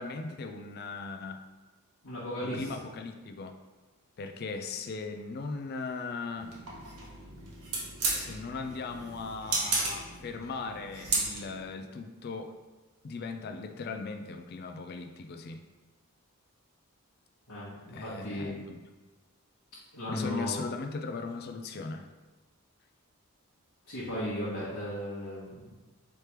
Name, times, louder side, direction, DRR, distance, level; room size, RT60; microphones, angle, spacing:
voice 1, 0.0-1.4 2.4-3.6 4.2-6.5 8.2-12.5 13.0-15.6 17.9-18.8 20.1-22.1, left 4 dB, 45° left, 6 dB, 0.3 m, -38 dB
voice 2, 2.0-2.7 17.5-18.5 19.9-20.6 23.9-25.8, equal, 90° left, -12 dB, 1.3 m, -36 dB
sound 1, 6.3-11.7, right 3 dB, 85° right, 1.0 m, -34 dB
3.3 x 3.1 x 4.4 m, 1.2 s
head